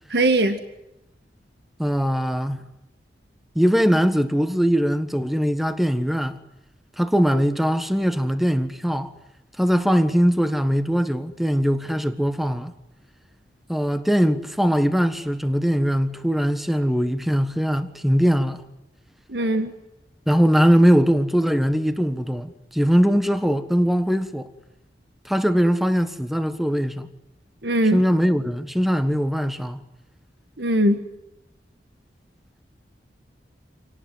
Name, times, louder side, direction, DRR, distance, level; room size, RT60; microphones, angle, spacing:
voice 1, 0.1-0.6 19.3-19.7 27.6-28.0 30.6-31.0, right 1 dB, 70° right, 1.8 m, -20 dB
voice 2, 1.8-2.6 3.5-6.4 7.0-9.1 9.6-12.7 13.7-18.6 20.3-24.5 25.2-27.1 27.9-29.8, equal, ahead, 1.4 m, -21 dB
27.5 x 19.0 x 9.6 m
head